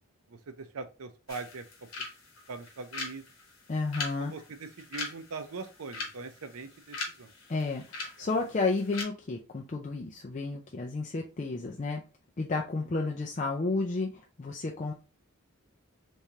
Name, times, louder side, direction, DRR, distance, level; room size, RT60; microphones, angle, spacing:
voice 1, 0.3-1.6 2.0-2.1 2.5-3.2 4.2-7.3 8.2-8.3, right 4 dB, 90° right, 9 dB, 0.6 m, -42 dB
sound 1, 1.3-9.0, left 3 dB, 70° left, 1.2 m, -42 dB
voice 2, 3.7-4.3 7.5-7.8 8.2-12.0 12.4-14.1 14.4-14.9, left 3 dB, 35° left, 0 dB, 0.4 m, -31 dB
3.5 x 3.1 x 2.7 m, 0.31 s
head